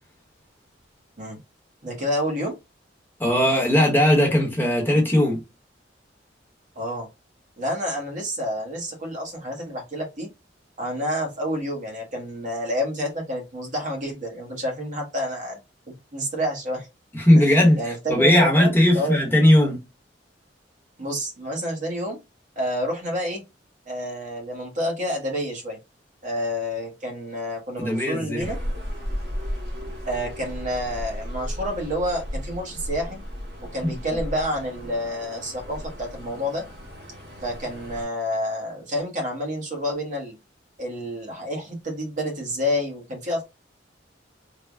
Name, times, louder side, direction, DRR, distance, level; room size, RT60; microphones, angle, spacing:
voice 1, 1.8-2.5 6.8-7.1 7.6-10.3 10.8-15.6 15.9-16.9 17.4-17.5 17.8-19.2 21.0-22.2 22.6-23.4 23.9-25.8 26.2-28.6 30.1-33.2 33.6-36.6 37.4-40.4 40.8-43.4, equal, 45° right, 1.0 m, -29 dB
voice 2, 3.2-5.4 17.2-17.8 18.1-19.8 27.8-28.5 33.8-34.0, left 1 dB, 10° left, 0.9 m, -18 dB
sound 1, 28.4-38.0, equal, 60° right, 1.6 m, -34 dB
3.3 x 2.1 x 3.4 m
head